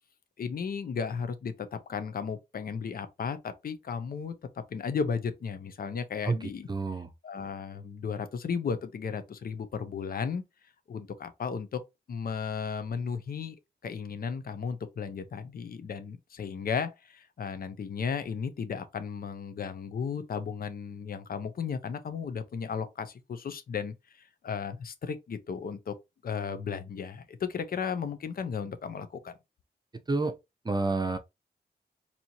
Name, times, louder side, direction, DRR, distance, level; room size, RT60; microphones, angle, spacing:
voice 1, 0.4-4.3 4.7-6.7 7.2-10.4 10.9-11.8 12.1-13.6 13.8-25.9 26.2-29.3, left 6 dB, 60° left, 0.7 m, -35 dB
voice 2, 6.2-7.1 30.1-30.4 30.6-31.2, right 3 dB, 25° right, 0.6 m, -29 dB
4.2 x 2.8 x 2.8 m
wide cardioid pair, 105°, 17 cm